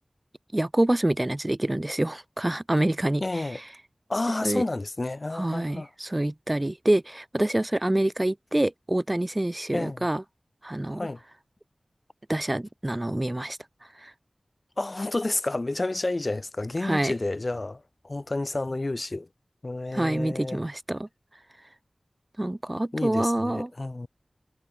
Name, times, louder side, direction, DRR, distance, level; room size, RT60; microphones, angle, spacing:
voice 1, 0.5-3.4 4.4-4.7 5.3-10.2 10.6-11.0 12.3-13.6 14.0-14.1 16.8-17.1 19.9-21.1 22.4-23.7, right 1 dB, 25° right, 1.8 m, -26 dB
voice 2, 3.2-3.6 4.1-5.9 9.7-10.1 10.9-11.2 14.8-19.3 19.6-20.6 22.9-24.1, left 2 dB, 45° left, 2.5 m, -30 dB
wide cardioid pair, 70°, 0 cm